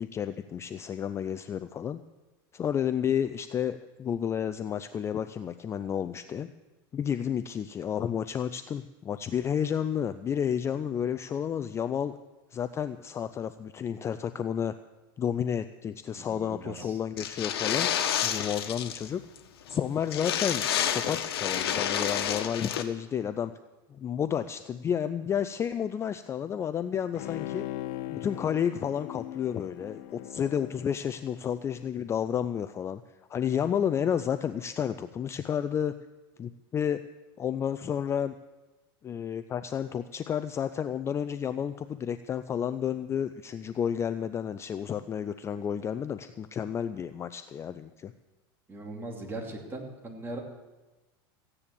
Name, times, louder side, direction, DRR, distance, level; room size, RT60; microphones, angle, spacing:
voice 1, 0.0-2.0 2.5-6.5 6.9-12.2 12.5-14.7 15.2-17.9 18.2-19.3 19.7-23.5 23.9-27.7 28.1-33.0 33.3-35.9 36.4-37.0 37.4-38.3 39.0-48.1, left 8 dB, 20° left, 11 dB, 0.4 m, -31 dB
voice 2, 16.1-17.0 48.7-50.4, right 2 dB, 15° right, 0 dB, 2.8 m, -39 dB
sound 1, 17.2-19.1 19.4-19.5 19.7-19.8 20.1-22.8, left 9 dB, 85° left, 1.3 m, -29 dB
Bowed string instrument, 27.1-31.8 32.2-32.3, left 15 dB, 60° left, 0.8 m, -40 dB
15.5 x 9.9 x 7.0 m, 1.1 s
supercardioid pair, 135°, 13 cm